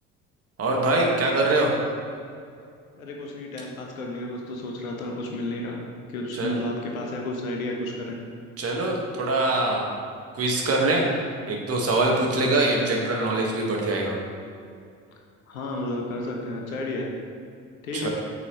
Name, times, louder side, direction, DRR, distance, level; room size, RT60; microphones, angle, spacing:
voice 1, 0.6-1.7 6.3-6.5 8.6-10.0 10.3-11.1 11.5-14.2 17.9-18.1, right 2 dB, 35° right, -1 dB, 1.6 m, -23 dB
voice 2, 3.0-5.8 6.1-8.2 12.4-12.9 15.5-17.1 17.8-18.1, left 1 dB, 75° left, 0 dB, 1.2 m, -32 dB
8.2 x 6.5 x 3.0 m, 2.3 s
figure-of-eight pair, 60°, 42 cm